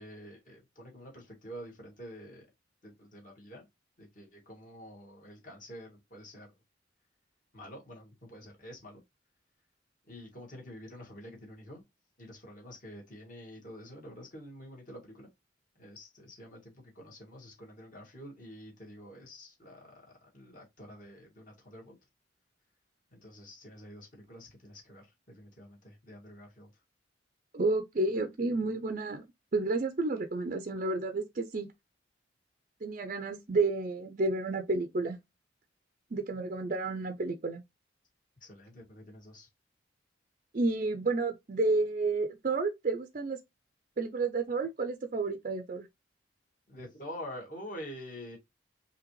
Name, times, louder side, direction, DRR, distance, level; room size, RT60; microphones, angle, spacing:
voice 1, 0.0-2.5 2.8-3.7 4.0-6.5 7.5-9.0 10.1-11.8 12.2-15.3 15.8-22.0 23.1-26.7 38.4-39.5 46.7-48.4, equal, 45° left, 2.0 m, -47 dB
voice 2, 27.5-29.2 29.5-31.7 32.8-35.2 36.1-37.6 40.5-43.4 44.0-45.9, right 3 dB, 45° right, 0.5 m, -31 dB
4.8 x 2.9 x 3.1 m
head